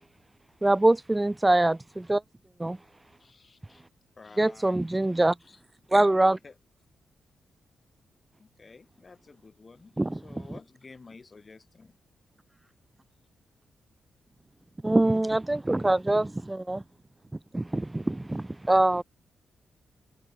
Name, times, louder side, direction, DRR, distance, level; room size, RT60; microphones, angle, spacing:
voice 1, 0.6-2.2 2.6-2.8 4.4-5.3 5.9-6.4 10.0-10.2 14.8-16.8 17.5-19.0, right 2 dB, 15° right, 0.5 m, -24 dB
voice 2, 3.2-3.8 4.2-4.9 5.1-5.6 6.4-6.6 8.4-12.0 17.9-18.0, left 4 dB, 40° left, 5.3 m, -52 dB
cardioid pair, 65°, 0 cm